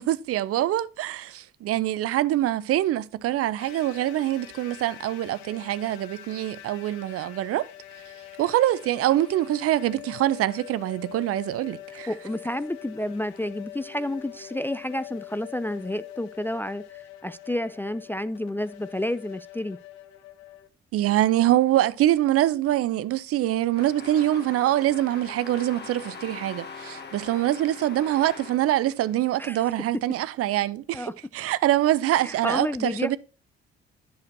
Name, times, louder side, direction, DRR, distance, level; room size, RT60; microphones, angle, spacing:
voice 1, 0.0-7.7 8.4-12.1 20.9-33.2, right 13 dB, 50° right, 0.5 m, -24 dB
sound 1, 3.6-20.7, left 13 dB, 70° left, 0.8 m, -44 dB
voice 2, 12.1-19.8 29.4-29.7 30.9-31.1 32.2-33.2, left 1 dB, 5° left, 0.4 m, -30 dB
sound 2, 23.7-29.5, left 4 dB, 35° left, 1.7 m, -42 dB
10.5 x 6.2 x 2.7 m
figure-of-eight pair, 45°, 30 cm